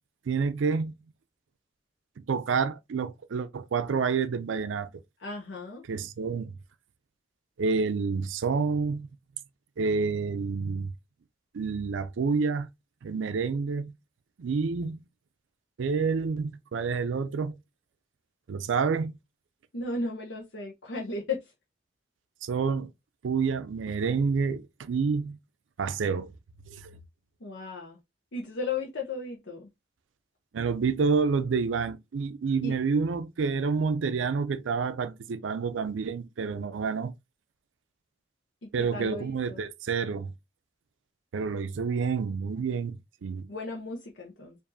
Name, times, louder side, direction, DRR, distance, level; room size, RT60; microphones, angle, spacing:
voice 1, 0.3-0.9 2.3-4.9 5.9-6.5 7.6-9.1 9.8-10.9 11.5-12.7 13.0-13.9 14.4-15.0 15.8-17.6 18.5-19.1 22.4-22.9 23.2-25.4 25.8-26.3 26.7-26.9 30.5-37.1 38.7-40.3 41.3-43.5, right 5 dB, 90° right, 0.4 m, -28 dB
voice 2, 5.2-5.8 19.7-21.5 27.4-28.0 28.3-29.7 32.6-32.8 38.6-39.6 43.5-44.6, left 3 dB, 70° left, 0.7 m, -35 dB
4.8 x 2.6 x 2.6 m
head